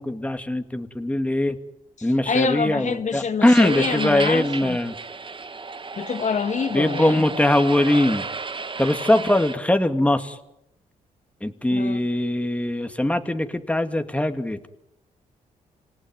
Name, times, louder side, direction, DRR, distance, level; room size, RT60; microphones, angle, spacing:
voice 1, 0.0-1.6 2.0-4.9 6.7-8.3 8.8-10.4 11.4-14.7, left 1 dB, 10° left, 2.2 m, -21 dB
voice 2, 2.0-4.8 6.0-7.2 11.7-12.0, left 5 dB, 55° left, 1.4 m, -26 dB
sound 1, 3.4-9.6, right 4 dB, 35° right, 1.4 m, -33 dB
27.0 x 17.5 x 9.3 m
supercardioid pair, 60°, 15 cm